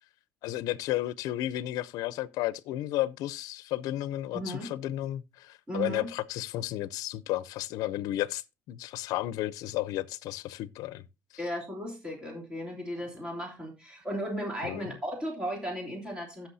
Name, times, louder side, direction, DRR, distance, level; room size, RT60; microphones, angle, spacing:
voice 1, 0.4-8.4 8.7-11.0 14.6-14.9, left 15 dB, 75° left, 0.5 m, -33 dB
voice 2, 4.3-4.7 5.7-6.1 11.4-16.5, equal, 15° right, 3.1 m, -35 dB
15.5 x 6.0 x 2.7 m
cardioid pair, 150°, 6 cm